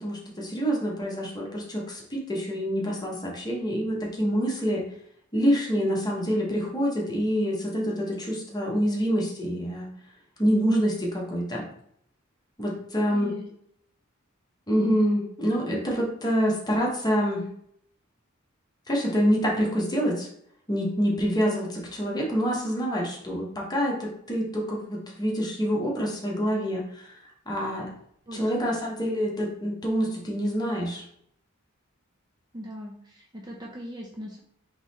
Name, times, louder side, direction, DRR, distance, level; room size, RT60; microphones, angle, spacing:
voice 1, 0.0-4.8 5.3-9.9 10.4-11.6 12.6-13.3 14.7-17.4 18.9-20.3 20.7-27.2 27.5-27.9 28.3-31.0, equal, 20° left, -2 dB, 1.1 m, -26 dB
voice 2, 13.1-13.5 28.3-28.7 32.5-34.4, equal, 20° right, -1 dB, 0.5 m, -40 dB
3.9 x 3.1 x 4.1 m, 0.69 s
head